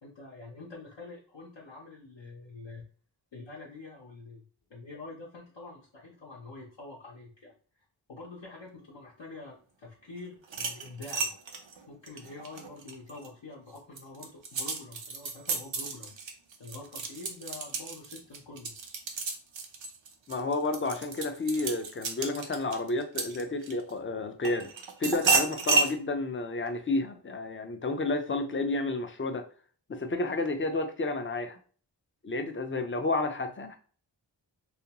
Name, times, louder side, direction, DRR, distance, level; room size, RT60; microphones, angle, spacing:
voice 1, 0.0-2.9 3.3-4.4 4.7-7.5 8.1-11.3 11.9-16.1 16.6-18.7, left 3 dB, 70° left, 0.7 m, -46 dB
sound 1, 10.4-13.3 13.8-23.9 24.4-25.9, right 4 dB, 75° right, 0.6 m, -32 dB
voice 2, 20.3-24.7 25.0-29.5 29.9-31.6 32.2-33.8, left 2 dB, 30° left, 0.4 m, -31 dB
2.4 x 2.2 x 2.8 m
wide cardioid pair, 60°, 46 cm